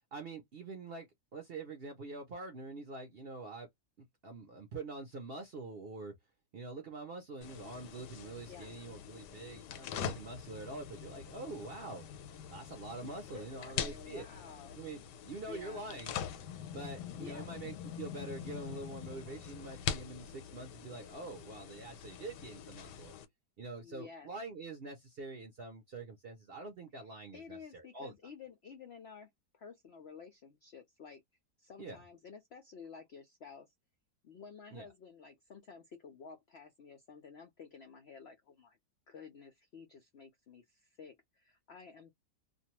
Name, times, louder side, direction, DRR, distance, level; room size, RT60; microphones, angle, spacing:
voice 1, 0.1-3.7 4.0-6.1 6.5-12.1 12.5-14.3 14.7-16.2 16.7-23.1 23.6-28.1 31.8-32.0 34.7-34.9, right 3 dB, 60° right, 0.6 m, -45 dB
sound 1, 7.4-23.2, left 8 dB, 90° left, 1.2 m, -44 dB
voice 2, 13.0-14.8 15.4-15.9 17.2-17.5 23.8-24.3 27.3-31.2 31.6-33.7 34.2-38.8 39.1-42.1, left 6 dB, 70° left, 0.6 m, -52 dB
2.6 x 2.2 x 2.8 m
omnidirectional pair, 1.7 m